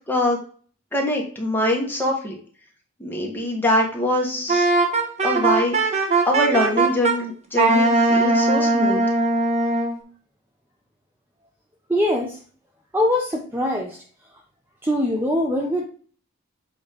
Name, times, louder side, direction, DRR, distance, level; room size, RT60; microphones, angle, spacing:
voice 1, 0.1-0.4 0.9-2.4 3.0-4.7 5.2-9.0, left 1 dB, 10° left, -1 dB, 1.6 m, -23 dB
Wind instrument woodwind instrument, 4.5-7.2 7.6-10.0, right 2 dB, 35° right, 1.2 m, -19 dB
voice 2, 11.9-12.4 12.9-14.0 14.8-15.8, left 1 dB, 10° right, 0 dB, 0.7 m, -22 dB
8.0 x 3.1 x 5.2 m, 0.44 s
head